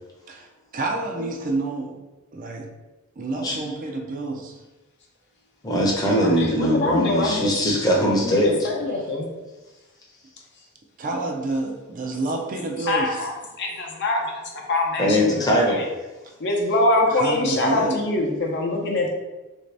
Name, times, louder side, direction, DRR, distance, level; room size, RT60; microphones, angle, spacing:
voice 1, 0.7-2.0 2.3-2.7 3.2-4.6 8.9-9.1 11.0-13.2 17.1-18.0, right 3 dB, 40° right, 2 dB, 0.4 m, -28 dB
voice 2, 5.6-8.7 15.0-15.8, equal, 20° left, -3 dB, 0.7 m, -21 dB
voice 3, 6.2-7.5 8.1-9.3 12.8-13.3 13.6-15.8 16.4-19.1, left 2 dB, 55° left, 0 dB, 0.6 m, -24 dB
3.3 x 2.6 x 3.2 m, 1.1 s
head